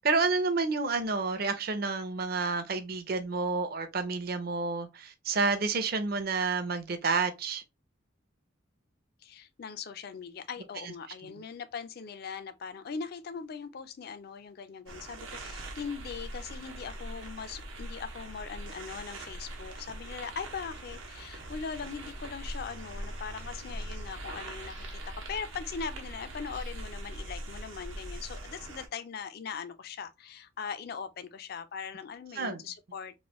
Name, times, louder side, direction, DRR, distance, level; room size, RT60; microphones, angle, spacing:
voice 1, 0.0-7.6 11.3-11.4 32.3-32.6, right 4 dB, 50° right, 0.6 m, -29 dB
voice 2, 9.2-33.1, left 6 dB, 50° left, 0.4 m, -40 dB
sound 1, 14.9-28.9, right 1 dB, 85° right, 0.9 m, -42 dB
3.1 x 2.5 x 2.9 m
head